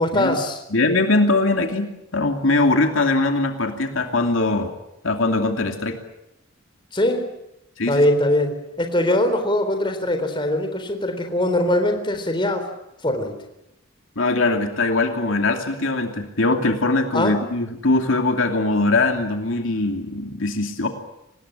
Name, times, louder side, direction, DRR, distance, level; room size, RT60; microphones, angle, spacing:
voice 1, 0.0-0.6 6.9-7.3 7.9-12.7 13.0-13.4 17.1-17.4, left 1 dB, 25° left, 6 dB, 3.8 m, -21 dB
voice 2, 0.7-1.9 2.1-4.7 5.0-6.0 7.8-8.0 14.2-20.9, left 2 dB, 70° left, 4 dB, 2.7 m, -21 dB
25.5 x 19.5 x 9.9 m, 0.85 s
head